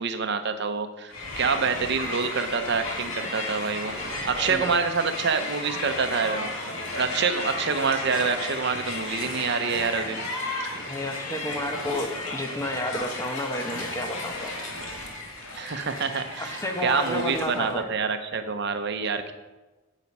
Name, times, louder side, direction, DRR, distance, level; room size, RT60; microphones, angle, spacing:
voice 1, 0.0-10.2 15.5-19.3, right 5 dB, 55° right, 8 dB, 0.8 m, -27 dB
Crowd, 1.1-17.8, left 2 dB, 90° left, 2.2 m, -34 dB
voice 2, 4.0-4.8 10.7-14.6 16.4-17.9, left 1 dB, 15° left, 4 dB, 1.0 m, -31 dB
9.0 x 8.2 x 5.4 m, 1.1 s
head